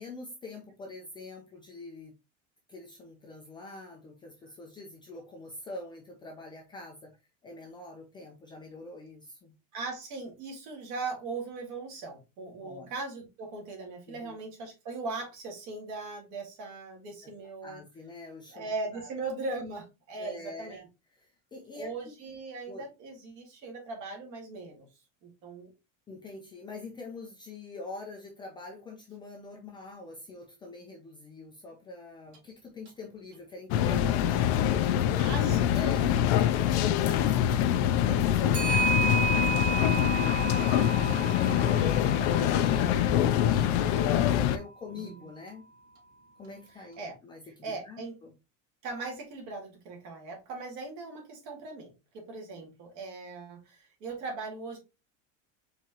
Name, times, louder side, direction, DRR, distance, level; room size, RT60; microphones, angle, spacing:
voice 1, 0.0-2.1 2.7-7.1 7.4-9.5 12.6-12.9 14.1-14.4 17.6-18.7 18.9-19.1 20.2-20.8 21.2-22.1 22.7-22.8 26.1-45.6 46.4-48.3, left 3 dB, 15° left, 0 dB, 0.5 m, -45 dB
voice 2, 9.7-17.8 18.5-20.8 21.7-24.9 25.2-25.7 35.2-35.7 43.7-44.5 44.9-45.2 46.7-47.2 47.6-48.2 48.8-54.8, right 3 dB, 50° right, 2 dB, 2.1 m, -39 dB
Clock, 32.3-32.4 32.9-33.0 35.8-36.0 38.5-42.8, right 4 dB, 75° right, 2.9 m, -31 dB
sound 1, 33.7-44.6, left 11 dB, 60° left, 0.5 m, -25 dB
4.8 x 3.7 x 2.9 m, 0.26 s
cardioid pair, 175°, 37 cm